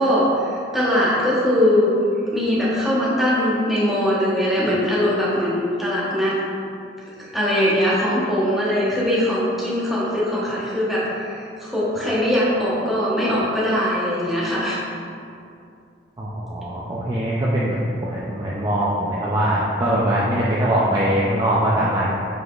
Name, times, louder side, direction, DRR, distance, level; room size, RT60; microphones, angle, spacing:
voice 1, 0.0-1.9 2.3-6.4 7.3-14.8, equal, ahead, -9 dB, 0.9 m, -21 dB
voice 2, 16.2-22.1, right 1 dB, 20° right, -7 dB, 0.4 m, -22 dB
5.0 x 4.0 x 2.4 m, 2.5 s
head